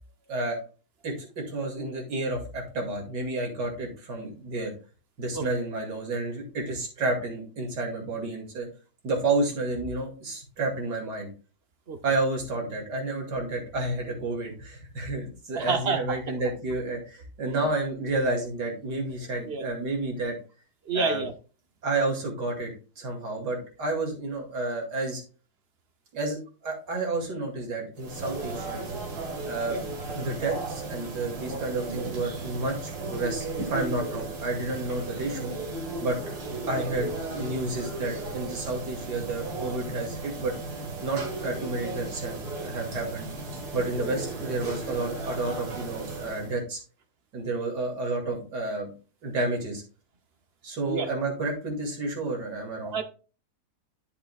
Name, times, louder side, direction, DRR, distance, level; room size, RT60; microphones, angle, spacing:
voice 1, 0.3-0.6 1.0-4.7 5.2-8.7 9.0-11.3 12.0-20.4 20.9-21.2 21.8-25.2 26.1-28.8 29.4-29.8 30.1-35.5 36.0-36.2 36.7-40.5 41.0-43.3 43.7-46.8 47.3-48.9 49.2-49.8 50.6-53.0, right 2 dB, 85° right, 2.8 m, -30 dB
voice 2, 15.5-16.2 19.4-19.7 20.9-21.3 29.7-29.8 36.7-36.9 50.9-51.1 52.8-53.0, right 5 dB, 50° right, 0.8 m, -29 dB
sound 1, 28.0-46.6, right 3 dB, 65° right, 2.1 m, -35 dB
11.0 x 6.8 x 2.3 m
omnidirectional pair, 1.8 m